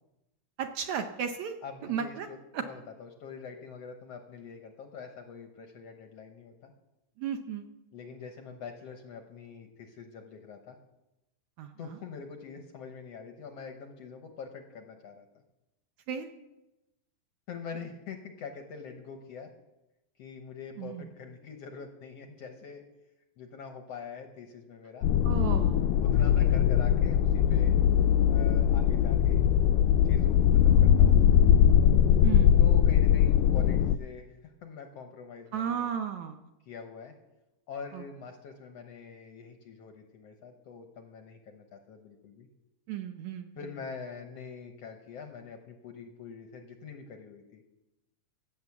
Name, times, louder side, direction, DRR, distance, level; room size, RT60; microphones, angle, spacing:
voice 1, 0.6-1.6 1.9-2.3 2.5-2.6 7.2-7.7 11.6-11.7 16.1-16.3 20.8-21.1 25.2-26.1 26.4-26.5 32.2-32.6 35.5-36.4 37.9-38.0 42.9-43.6, right 8 dB, 70° right, 6 dB, 1.9 m, -34 dB
voice 2, 1.6-6.7 7.9-10.8 11.8-15.3 17.5-19.5 20.2-22.8 23.4-25.1 26.0-27.8 28.3-29.4 30.1-31.2 32.6-35.9 36.7-37.1 37.7-42.5 43.6-47.6, left 5 dB, 65° left, 5 dB, 1.7 m, -44 dB
sound 1, 25.0-34.0, left 10 dB, 85° left, 2.2 m, -21 dB
15.5 x 8.3 x 7.1 m, 0.96 s
omnidirectional pair, 3.8 m